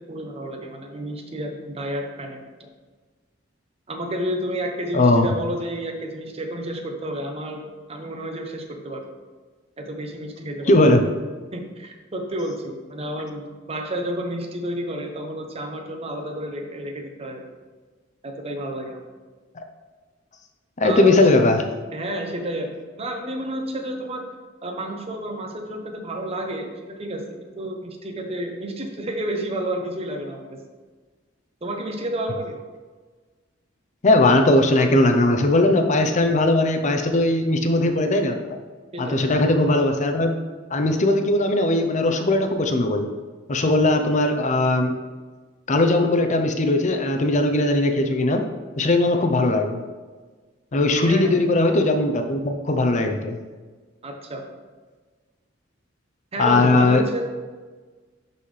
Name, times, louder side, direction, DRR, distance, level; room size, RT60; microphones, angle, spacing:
voice 1, 0.1-2.7 3.9-9.0 9.8-11.1 11.5-17.4 18.2-19.0 20.8-21.2 21.9-24.2 24.6-30.6 31.6-32.6 38.9-39.2 51.0-51.4 54.0-54.5 56.3-57.2, right 1 dB, 30° right, 3 dB, 0.8 m, -31 dB
voice 2, 4.9-5.3 10.7-11.0 20.8-21.6 34.0-38.4 39.0-40.3 40.7-43.1 43.5-44.9 45.7-48.4 48.8-49.8 50.7-53.4 56.4-57.0, left 2 dB, 40° left, 5 dB, 0.6 m, -19 dB
11.0 x 4.1 x 3.3 m, 1.4 s
head